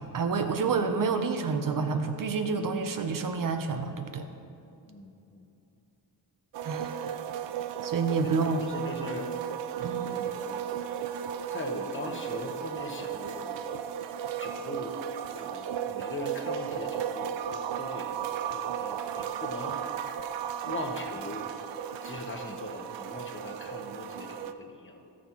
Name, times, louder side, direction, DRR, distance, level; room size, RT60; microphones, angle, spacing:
voice 1, 0.0-4.3 6.6-7.2 7.8-8.6 9.8-10.3, right 4 dB, 50° right, 7 dB, 0.8 m, -29 dB
voice 2, 4.9-5.4 8.4-9.3 10.1-10.7 11.5-13.6 14.4-15.0 15.4-18.2 18.5-20.2 20.6-21.5 22.0-25.1, left 2 dB, 25° left, 3 dB, 1.1 m, -40 dB
sound 1, 6.5-24.5, right 8 dB, 75° right, 0.6 m, -35 dB
14.0 x 6.3 x 3.0 m, 2.7 s
cardioid pair, 75°, 44 cm